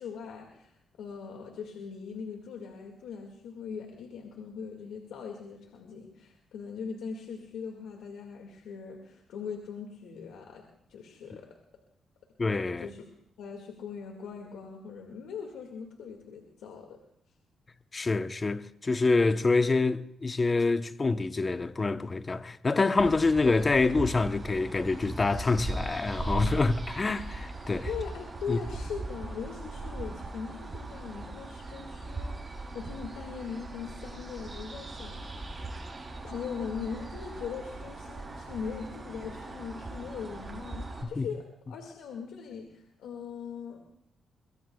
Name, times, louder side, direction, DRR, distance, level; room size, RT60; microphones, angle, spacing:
voice 1, 0.0-11.5 12.8-13.1 13.4-17.0 27.9-35.5 36.2-43.8, left 6 dB, 85° left, 2.0 m, -40 dB
voice 2, 12.4-12.9 17.9-27.9 28.5-28.6 41.2-41.3, left 3 dB, 35° left, 0.9 m, -26 dB
sound 1, 23.0-41.0, right 2 dB, 35° right, 7.6 m, -39 dB
22.5 x 22.5 x 2.3 m
supercardioid pair, 60°, 0 cm